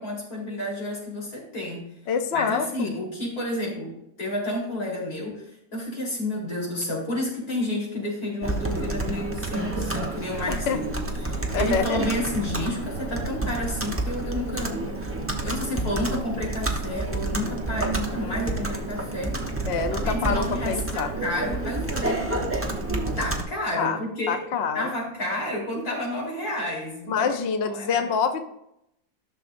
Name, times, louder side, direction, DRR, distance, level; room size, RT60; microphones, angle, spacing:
voice 1, 0.0-1.9 2.3-15.1 15.4-19.4 19.8-22.3 23.2-24.4 24.7-27.4 27.6-28.1, left 1 dB, 45° left, -5 dB, 4.1 m, -31 dB
voice 2, 2.1-3.0 10.5-10.8 11.5-12.0 19.7-21.1 23.8-24.0 24.3-24.9 27.1-28.5, left 6 dB, 80° left, 7 dB, 0.5 m, -26 dB
Computer keyboard, 8.4-23.4, right 2 dB, 20° right, 0.3 m, -29 dB
13.5 x 6.4 x 2.6 m, 0.81 s
omnidirectional pair, 2.1 m